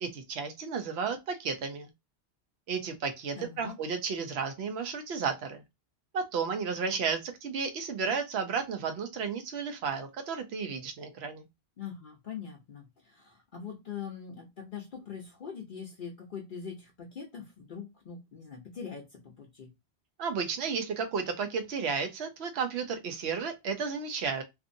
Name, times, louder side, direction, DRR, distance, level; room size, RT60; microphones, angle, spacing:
voice 1, 0.0-1.9 2.7-5.6 6.1-11.5 20.2-24.4, right 5 dB, 75° right, 0.9 m, -33 dB
voice 2, 3.4-3.8 11.8-19.7, left 7 dB, 55° left, 0.7 m, -42 dB
2.6 x 2.5 x 2.5 m
omnidirectional pair, 1.1 m